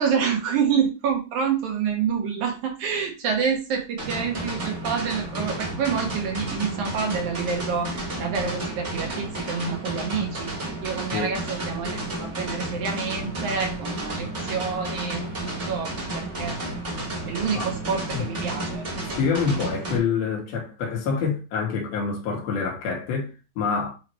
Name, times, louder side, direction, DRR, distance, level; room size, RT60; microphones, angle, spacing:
voice 1, 0.0-10.5 10.8-16.6 17.3-18.8, right 6 dB, 65° right, 2.6 m, -27 dB
sound 1, 4.0-20.0, right 2 dB, 30° right, 1.5 m, -32 dB
voice 2, 19.2-23.9, left 5 dB, 90° left, 3.4 m, -26 dB
8.8 x 3.0 x 4.4 m
omnidirectional pair, 4.2 m